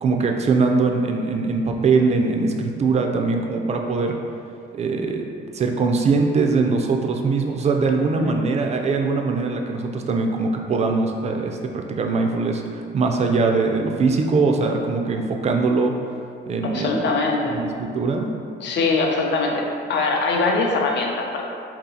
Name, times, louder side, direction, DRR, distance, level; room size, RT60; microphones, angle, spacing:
voice 1, 0.0-4.2 4.7-5.2 5.5-15.9 16.5-17.2 17.4-18.3, right 4 dB, 35° right, 3 dB, 0.4 m, -22 dB
voice 2, 16.6-17.6 18.6-21.5, left 3 dB, 65° left, 1 dB, 0.5 m, -22 dB
2.8 x 2.4 x 3.8 m, 2.5 s
cardioid pair, 90°, 20 cm